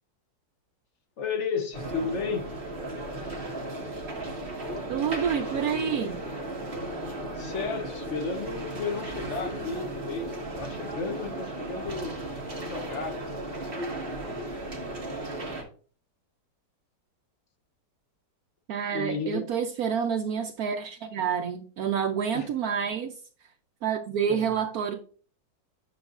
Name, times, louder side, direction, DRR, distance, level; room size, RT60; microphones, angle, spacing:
voice 1, 1.2-2.5 7.2-10.3 10.6-12.2 12.7-13.9 18.9-19.5 22.3-22.5 24.3-24.6, left 5 dB, 50° left, 1.0 m, -33 dB
sound 1, 1.7-15.6, right 1 dB, 35° right, 1.7 m, -35 dB
voice 2, 4.9-6.2 18.7-23.1 23.8-25.0, right 7 dB, 65° right, 1.0 m, -28 dB
9.2 x 6.3 x 2.5 m
omnidirectional pair, 1.9 m